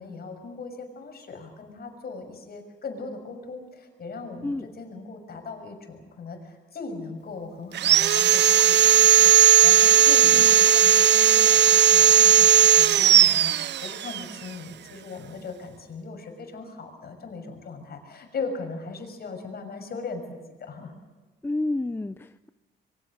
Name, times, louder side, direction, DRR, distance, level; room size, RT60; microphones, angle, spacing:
voice 1, 0.0-21.0, left 4 dB, 50° left, 5 dB, 6.5 m, -39 dB
Sawing, 7.7-14.2, right 9 dB, 60° right, 0.7 m, -17 dB
voice 2, 21.4-22.5, left 2 dB, 10° left, 11 dB, 0.7 m, -30 dB
26.0 x 23.5 x 6.7 m, 1.3 s
cardioid pair, 90°, 20 cm